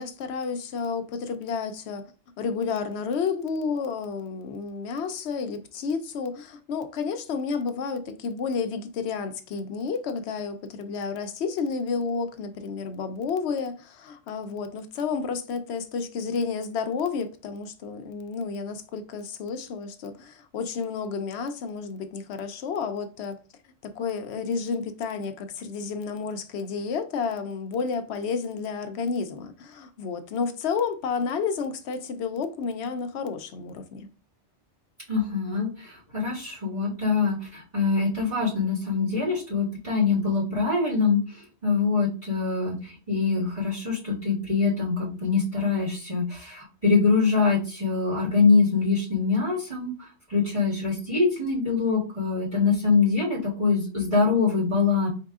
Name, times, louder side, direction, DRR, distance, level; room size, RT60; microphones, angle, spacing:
voice 1, 0.0-2.1 2.4-23.4 23.8-34.1, left 5 dB, 70° left, 0.9 m, -31 dB
voice 2, 35.1-49.9 50.3-55.1, left 4 dB, 35° right, 2.0 m, -24 dB
4.7 x 3.7 x 2.4 m
omnidirectional pair, 1.2 m